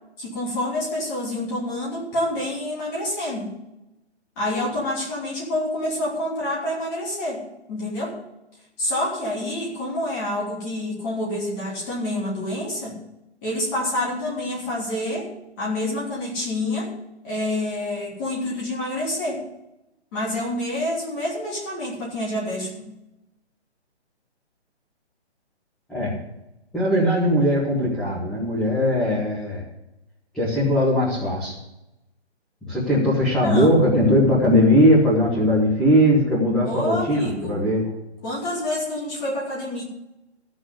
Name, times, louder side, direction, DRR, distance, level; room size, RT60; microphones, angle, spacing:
voice 1, 0.2-3.6 4.4-7.4 7.7-8.2 8.8-13.0 13.4-15.3 15.6-16.9 17.2-19.4 20.1-22.9 33.4-33.8 36.6-37.6 38.2-39.8, left 1 dB, 15° left, -4 dB, 3.0 m, -27 dB
voice 2, 26.7-29.6 30.3-31.6 32.6-37.8, equal, ahead, -9 dB, 1.2 m, -19 dB
14.5 x 6.3 x 8.0 m, 0.92 s
hypercardioid pair, 170°, 34 cm